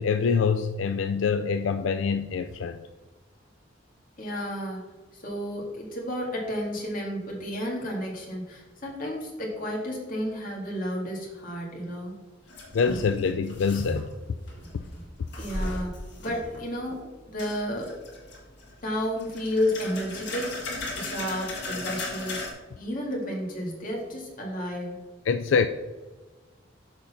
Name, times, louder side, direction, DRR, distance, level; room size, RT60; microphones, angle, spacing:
voice 1, 0.0-2.8 12.7-14.1 25.3-25.7, left 5 dB, 85° left, 9 dB, 0.4 m, -25 dB
voice 2, 4.2-12.1 15.4-15.9 16.2-18.0 18.8-20.6 20.9-22.4 22.8-25.0, equal, 45° left, -1 dB, 2.1 m, -32 dB
sound 1, 12.5-14.2 14.5-16.6 17.4-18.8 19.2-22.5, left 1 dB, 65° left, 2.2 m, -36 dB
6.6 x 5.2 x 5.6 m, 1.2 s
head